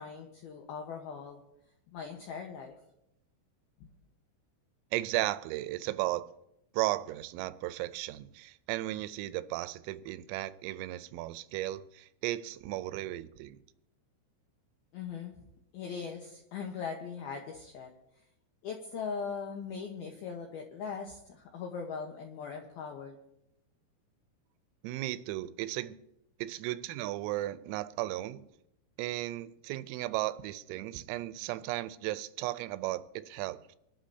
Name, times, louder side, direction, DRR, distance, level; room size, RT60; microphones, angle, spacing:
voice 1, 0.0-1.4 1.9-2.8 3.8-3.9 14.9-15.3 15.7-17.9 18.6-23.2, left 6 dB, 80° left, 2.2 m, -40 dB
voice 2, 4.9-6.3 6.7-13.6 24.8-26.0 26.4-28.5 29.0-33.8, right 16 dB, 85° right, 3.3 m, -35 dB
24.5 x 12.5 x 2.8 m
omnidirectional pair, 6.0 m